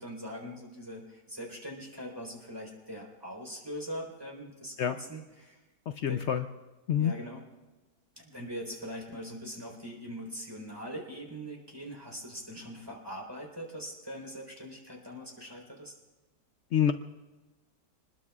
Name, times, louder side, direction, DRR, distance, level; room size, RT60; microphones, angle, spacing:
voice 1, 0.0-5.6 6.1-6.2 7.0-7.4 8.2-15.9, equal, 10° right, -1 dB, 3.9 m, -42 dB
voice 2, 5.9-6.5 6.9-7.1 16.7-16.9, left 9 dB, 80° left, 8 dB, 0.6 m, -26 dB
27.0 x 21.0 x 2.4 m, 1.2 s
omnidirectional pair, 1.9 m